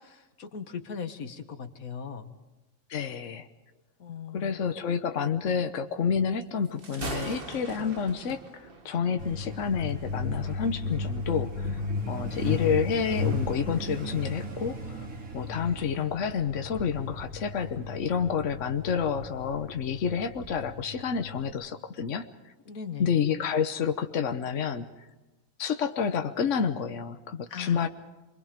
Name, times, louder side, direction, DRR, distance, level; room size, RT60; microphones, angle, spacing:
voice 1, 0.0-2.3 4.0-4.6 9.1-9.3 22.7-23.2 27.5-27.9, left 6 dB, 90° left, 8 dB, 1.9 m, -39 dB
voice 2, 2.9-3.5 4.3-11.8 12.1-14.8 15.3-22.3 23.0-24.8 25.6-27.9, left 7 dB, 65° left, 7 dB, 1.3 m, -29 dB
Thunder, 6.6-13.9, right 3 dB, 40° right, 1.8 m, -43 dB
Truck, 9.2-21.5, left 3 dB, 80° right, 3.2 m, -35 dB
28.5 x 23.5 x 5.2 m, 1.1 s
omnidirectional pair, 1.4 m